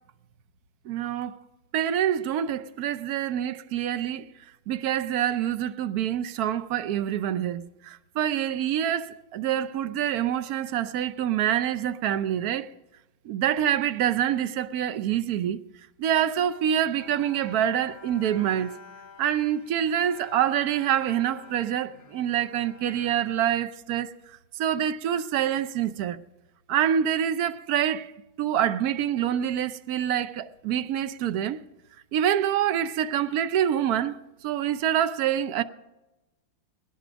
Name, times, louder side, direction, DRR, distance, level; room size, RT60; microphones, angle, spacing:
voice 1, 0.9-1.4 1.7-4.2 4.7-12.7 13.2-15.6 16.0-18.7 19.2-24.1 24.6-26.2 26.7-28.1 28.4-31.6 32.1-34.2 34.4-35.6, right 10 dB, 65° right, 0.9 m, -26 dB
Bowed string instrument, 16.9-24.3, left 5 dB, 75° left, 2.4 m, -49 dB
21.0 x 10.5 x 5.1 m
omnidirectional pair, 2.3 m